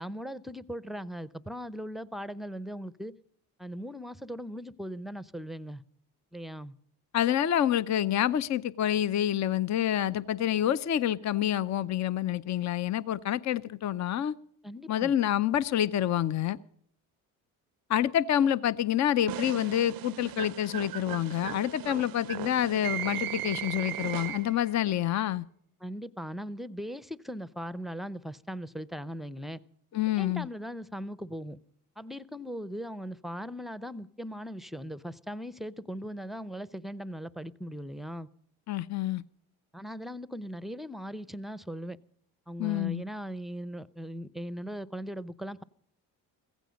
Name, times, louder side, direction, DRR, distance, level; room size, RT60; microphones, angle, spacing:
voice 1, 0.0-3.1 3.6-5.8 6.3-6.7 14.6-15.1 25.8-29.6 30.2-31.6 32.0-38.3 39.7-42.0 42.5-45.6, equal, ahead, 17 dB, 0.6 m, -39 dB
voice 2, 7.1-14.3 14.9-16.6 17.9-25.4 29.9-30.5 38.7-39.2 42.6-43.0, left 11 dB, 40° left, 17 dB, 0.6 m, -27 dB
sound 1, 19.3-24.7, right 15 dB, 50° right, 0.5 m, -37 dB
16.0 x 15.5 x 5.1 m, 0.66 s
supercardioid pair, 65°, 45 cm